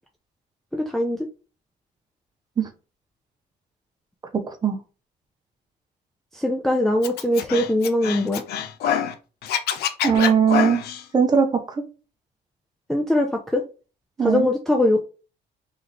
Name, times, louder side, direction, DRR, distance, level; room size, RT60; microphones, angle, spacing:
voice 1, 0.7-1.2 6.3-8.4 12.9-13.6 14.2-15.0, left 1 dB, ahead, 0.4 m, -21 dB
Scratching (performance technique), 7.0-9.1 9.4-11.0, left 9 dB, 75° left, 0.6 m, -25 dB
voice 2, 10.0-10.8 11.1-11.8 14.2-14.5, right 6 dB, 25° right, 0.8 m, -19 dB
3.2 x 3.0 x 3.9 m
cardioid pair, 140°, 17 cm